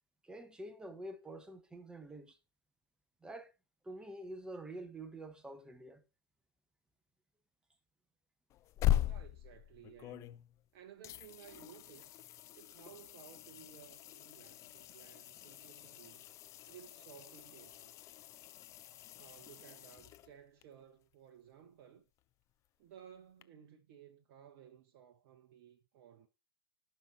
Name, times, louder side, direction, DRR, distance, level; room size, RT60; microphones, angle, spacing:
voice 1, 0.2-2.4 3.2-3.5 3.8-6.0, right 1 dB, 5° right, 1.1 m, -47 dB
sound 1, 8.5-10.7 11.0-20.6 23.4-23.5, left 13 dB, 25° left, 0.4 m, -40 dB
voice 2, 9.0-10.4 10.7-12.2 12.5-16.2 16.7-17.9 19.2-22.1 22.8-26.3, right 9 dB, 45° right, 0.9 m, -57 dB
16.0 x 5.6 x 3.0 m
figure-of-eight pair, 110°, 12 cm